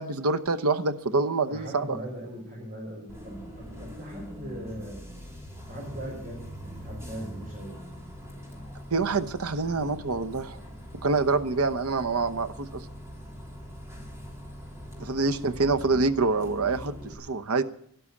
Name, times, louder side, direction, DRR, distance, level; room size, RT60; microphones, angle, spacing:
voice 1, 0.0-2.0 8.9-10.6 11.0-12.9 15.0-17.6, right 3 dB, 85° right, 9 dB, 0.9 m, -26 dB
voice 2, 1.5-5.4 5.7-8.5 14.9-15.1, right 1 dB, 40° right, -3 dB, 5.4 m, -40 dB
Bus, 3.1-17.1, equal, 15° right, 3.3 m, -43 dB
12.5 x 11.5 x 8.4 m, 0.68 s
head